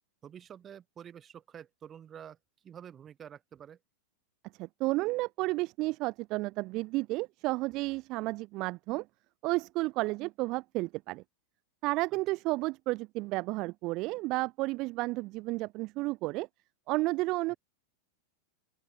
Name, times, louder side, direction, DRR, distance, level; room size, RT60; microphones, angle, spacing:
voice 1, 0.2-3.8 17.5-17.6, right 9 dB, 25° right, 3.5 m, -49 dB
voice 2, 4.6-9.1 9.4-11.2 11.8-16.5 16.9-17.5, right 21 dB, 40° right, 0.6 m, -32 dB
open air
figure-of-eight pair, 90°, 0 cm